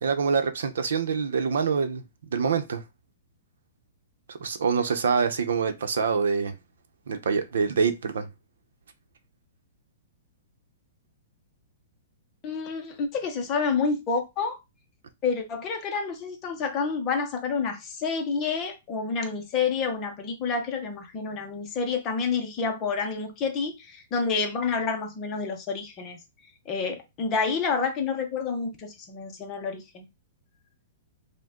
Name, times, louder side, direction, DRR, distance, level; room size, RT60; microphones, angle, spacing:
voice 1, 0.0-2.0 2.3-2.8 4.3-6.5 7.1-8.3, right 5 dB, 75° right, 0.7 m, -25 dB
voice 2, 12.4-14.6 15.2-26.2 26.7-30.1, left 5 dB, 20° left, 0.7 m, -29 dB
5.1 x 2.2 x 3.7 m
hypercardioid pair, 175°, 0 cm